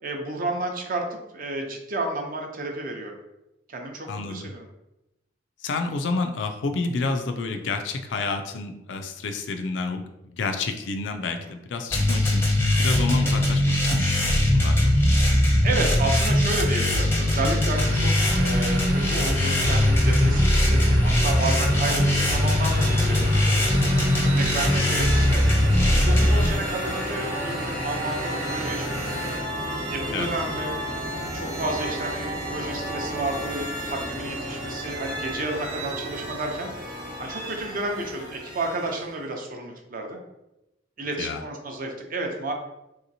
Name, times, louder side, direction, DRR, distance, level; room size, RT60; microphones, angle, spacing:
voice 1, 0.0-3.2 3.7-4.7 11.4-11.5 15.6-23.8 24.2-25.4 25.9-29.4 29.9-30.7 31.3-36.7 37.2-40.2 41.0-42.5, right 2 dB, 45° right, 2 dB, 0.6 m, -31 dB
voice 2, 4.1-4.5 5.6-12.5 12.8-14.9 30.1-30.3 41.2-41.4, left 3 dB, 70° left, 6 dB, 0.4 m, -29 dB
sound 1, 11.9-26.5, left 1 dB, 10° left, 0.5 m, -21 dB
sound 2, 17.7-29.4, equal, 85° right, 1.0 m, -33 dB
sound 3, 21.1-39.3, equal, 20° right, 0.8 m, -33 dB
3.2 x 2.8 x 2.7 m, 0.92 s
head